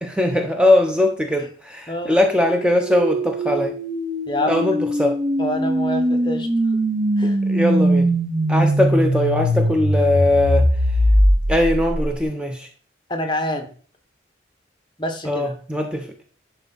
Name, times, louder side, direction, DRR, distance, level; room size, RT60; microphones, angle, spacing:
voice 1, 0.0-3.8 4.5-5.2 7.2-8.1 8.5-10.7 11.5-12.7 15.3-16.1, left 1 dB, 5° right, 4 dB, 0.9 m, -20 dB
voice 2, 1.9-2.2 4.3-4.6 5.4-6.5 7.2-7.4 13.1-13.7 15.0-15.5, left 1 dB, 25° left, 5 dB, 1.3 m, -26 dB
sound 1, 2.2-12.2, equal, 55° right, 1.9 m, -21 dB
10.5 x 5.6 x 4.2 m, 0.43 s
head